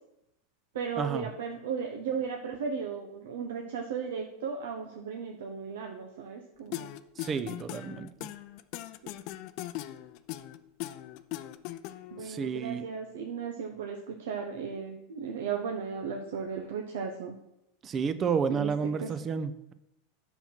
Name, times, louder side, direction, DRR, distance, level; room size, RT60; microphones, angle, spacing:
voice 1, 0.7-6.9 9.0-9.1 12.1-17.4 18.5-19.1, right 6 dB, 70° right, 3 dB, 1.0 m, -36 dB
sound 1, 6.7-12.3, left 15 dB, 55° left, 0.6 m, -39 dB
voice 2, 7.2-8.1 12.2-12.8 17.8-19.7, right 6 dB, 30° right, 12 dB, 0.7 m, -31 dB
8.1 x 5.8 x 6.0 m, 0.84 s
hypercardioid pair, 90°, 0 cm